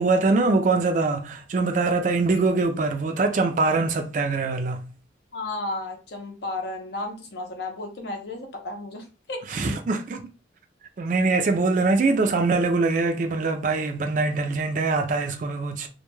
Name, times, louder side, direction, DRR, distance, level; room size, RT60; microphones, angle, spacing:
voice 1, 0.0-4.8 9.5-10.2 11.0-15.9, right 3 dB, 45° right, 0.3 m, -23 dB
voice 2, 5.3-9.4, left 2 dB, 65° left, 0.6 m, -33 dB
2.2 x 2.1 x 3.0 m
head